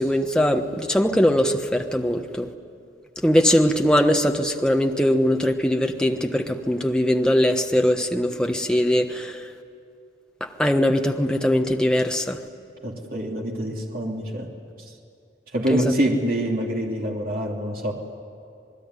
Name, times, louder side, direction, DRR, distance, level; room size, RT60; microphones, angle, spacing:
voice 1, 0.0-2.5 3.2-9.5 10.4-12.4 15.7-15.8, equal, 5° left, 4 dB, 1.2 m, -21 dB
voice 2, 12.8-14.5 14.8-14.9 15.5-17.9, equal, 50° right, -1 dB, 2.8 m, -25 dB
27.5 x 19.5 x 9.7 m, 2.5 s
head